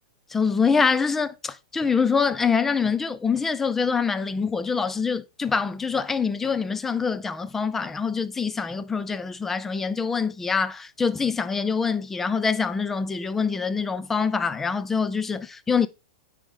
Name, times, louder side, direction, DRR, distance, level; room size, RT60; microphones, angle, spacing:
voice 1, 0.3-15.9, left 5 dB, 10° left, 0.4 m, -25 dB
9.2 x 4.9 x 3.4 m
supercardioid pair, 150°, 3 cm